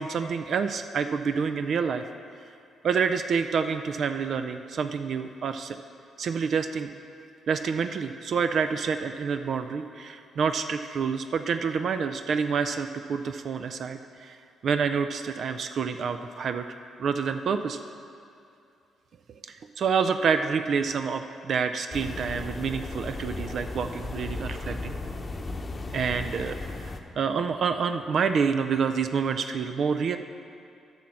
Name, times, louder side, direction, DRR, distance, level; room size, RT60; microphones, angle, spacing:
voice 1, 0.0-2.0 2.8-5.8 6.2-6.9 7.5-14.4 14.6-16.7 17.0-17.8 19.4-25.0 25.9-30.2, right 6 dB, 60° right, 8 dB, 0.4 m, -28 dB
sound 1, 21.9-27.0, left 3 dB, 35° left, 0.8 m, -35 dB
9.0 x 6.3 x 5.8 m, 2.5 s
hypercardioid pair, 50°, 0 cm